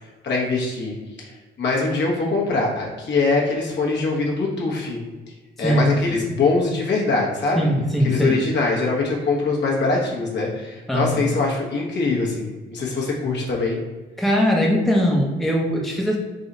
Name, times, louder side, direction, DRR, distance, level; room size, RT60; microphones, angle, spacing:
voice 1, 0.2-0.9 1.2-5.0 5.6-7.7 8.0-13.8, left 3 dB, 60° left, -2 dB, 1.3 m, -23 dB
voice 2, 5.6-6.2 7.6-8.4 10.9-11.2 14.2-16.2, equal, ahead, -1 dB, 0.8 m, -20 dB
4.0 x 2.9 x 3.9 m, 1.3 s
cardioid pair, 90°, 20 cm